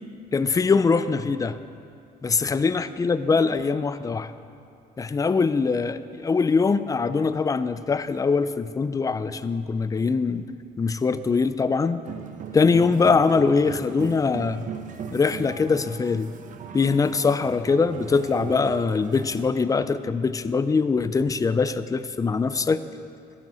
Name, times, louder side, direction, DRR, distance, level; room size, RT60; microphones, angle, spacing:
voice 1, 0.3-1.6 2.2-4.3 5.0-10.4 10.8-12.0 12.5-14.7 15.1-16.3 16.7-22.8, left 4 dB, 20° left, 13 dB, 0.5 m, -22 dB
sound 1, 12.0-19.5, right 7 dB, 50° right, 1.0 m, -38 dB
12.0 x 10.0 x 7.5 m, 2.5 s
cardioid pair, 110°, 17 cm